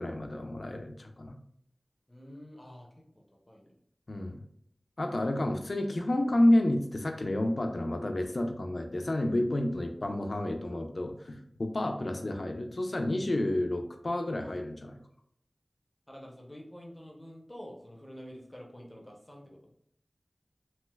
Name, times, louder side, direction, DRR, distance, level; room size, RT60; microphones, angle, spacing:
voice 1, 0.0-1.4 4.1-4.4 5.0-15.0, left 1 dB, 65° left, 5 dB, 0.4 m, -30 dB
voice 2, 2.1-2.9 3.1-3.7 11.9-12.1 16.1-19.7, equal, 20° left, 0 dB, 0.6 m, -48 dB
3.2 x 2.8 x 2.2 m, 0.71 s
wide cardioid pair, 55°, 0 cm